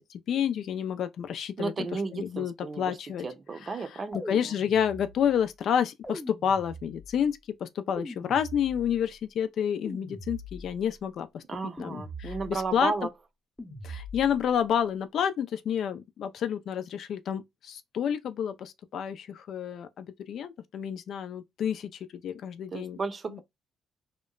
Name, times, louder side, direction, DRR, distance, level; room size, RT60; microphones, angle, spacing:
voice 1, 0.3-3.3 3.6-11.4 11.8-12.9 13.8-23.0 23.3-23.4, left 8 dB, 65° left, 0.4 m, -30 dB
voice 2, 1.6-3.0 3.2-4.4 11.5-13.1 22.7-23.4, right 4 dB, 40° right, 0.6 m, -33 dB
sound 1, 4.1-5.3 6.0-7.2 8.0-9.1 9.9-10.9 11.8-12.7 13.6-14.5, equal, 10° left, 0.7 m, -42 dB
2.8 x 2.1 x 2.2 m
supercardioid pair, 80°, 0 cm